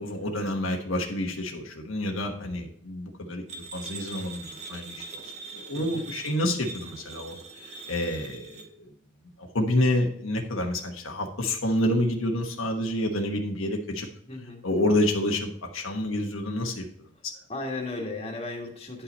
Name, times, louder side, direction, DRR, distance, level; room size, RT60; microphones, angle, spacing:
voice 1, 0.0-5.2 5.5-8.9 9.4-14.1 14.6-16.9 17.2-17.3, left 1 dB, 80° left, 2 dB, 1.3 m, -28 dB
sound 1, 3.5-8.7, right 3 dB, 35° right, 0.9 m, -42 dB
voice 2, 5.7-6.0 14.3-14.6 17.5-19.0, left 2 dB, 30° left, 0 dB, 1.7 m, -35 dB
10.0 x 5.7 x 4.2 m, 0.62 s
head